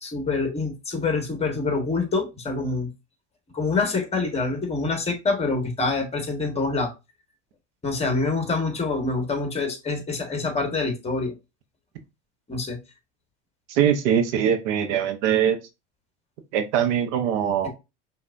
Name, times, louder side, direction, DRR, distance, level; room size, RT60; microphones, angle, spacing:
voice 1, 0.0-2.9 3.5-6.9 7.8-11.3 12.5-12.8, left 3 dB, 15° left, 1.5 m, -26 dB
voice 2, 13.7-15.6 16.5-17.7, right 9 dB, 75° right, 1.0 m, -22 dB
5.6 x 2.7 x 2.6 m
supercardioid pair, 105°, 36 cm